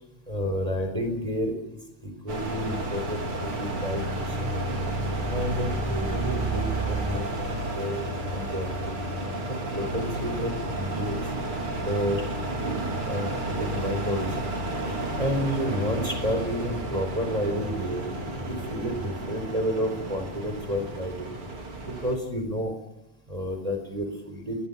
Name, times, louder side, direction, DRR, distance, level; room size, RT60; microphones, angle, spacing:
voice 1, 0.3-1.5 2.0-4.5 5.3-6.6 6.9-7.3 7.7-8.0 8.3-8.9 9.7-11.2 11.8-12.2 12.6-14.3 15.2-18.0 18.5-21.3 21.8-22.7 23.3-24.6, equal, 10° right, 5 dB, 4.3 m, -30 dB
sound 1, 2.3-22.2, right 1 dB, 45° right, 4.4 m, -31 dB
23.0 x 19.0 x 8.5 m, 0.90 s
omnidirectional pair, 3.4 m